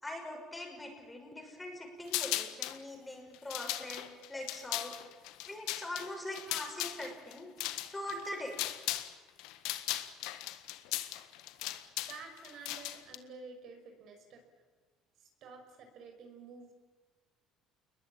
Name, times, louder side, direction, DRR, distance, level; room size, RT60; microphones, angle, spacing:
voice 1, 0.0-4.9 5.4-8.6, left 1 dB, 10° left, 2 dB, 6.0 m, -42 dB
sound 1, 2.1-2.8 3.3-9.1 9.4-13.2, left 15 dB, 90° left, 1.6 m, -37 dB
voice 2, 12.1-14.4 15.2-16.7, right 4 dB, 55° right, 4 dB, 5.9 m, -50 dB
29.0 x 21.5 x 8.9 m, 1.4 s
cardioid pair, 150°, 0 cm